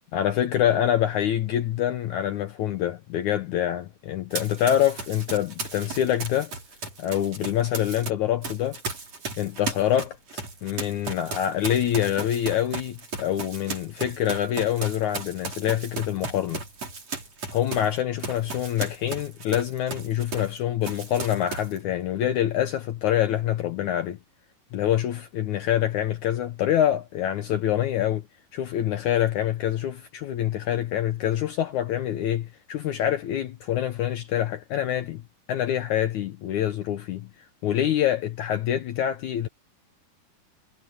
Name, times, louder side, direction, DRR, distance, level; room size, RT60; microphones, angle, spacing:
voice 1, 0.1-6.5 7.0-8.8 9.4-16.6 17.5-24.2 24.7-28.2 28.5-35.2 35.5-37.3 37.6-39.5, left 11 dB, 75° left, 1.8 m, -26 dB
Run, 4.3-8.1 8.4-20.6 20.8-21.8, right 4 dB, 40° right, 6.6 m, -36 dB
omnidirectional pair, 4.6 m